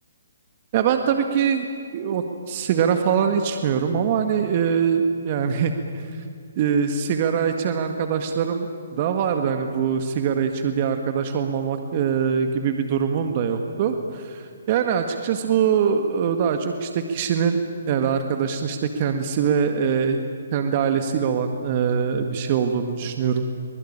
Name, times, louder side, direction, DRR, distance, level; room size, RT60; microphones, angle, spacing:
voice 1, 0.7-6.0 6.6-20.2 20.5-23.4, right 7 dB, 40° right, 6 dB, 1.8 m, -23 dB
23.5 x 21.5 x 8.9 m, 2.2 s
hypercardioid pair, 140°, 0 cm